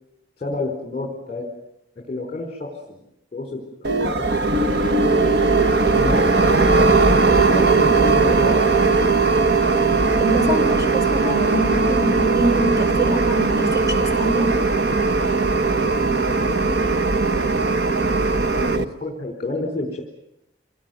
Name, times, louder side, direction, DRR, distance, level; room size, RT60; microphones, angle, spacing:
voice 1, 0.4-1.5 2.1-3.0 3.3-3.6 4.0-4.3 4.6-5.0 5.9-9.1 18.5-20.0, left 2 dB, 30° left, 2 dB, 4.8 m, -28 dB
sound 1, 3.8-18.8, right 3 dB, 70° right, 1.4 m, -18 dB
voice 2, 10.2-14.5, right 1 dB, 20° right, 2 dB, 6.2 m, -24 dB
28.5 x 21.0 x 9.4 m, 0.81 s
head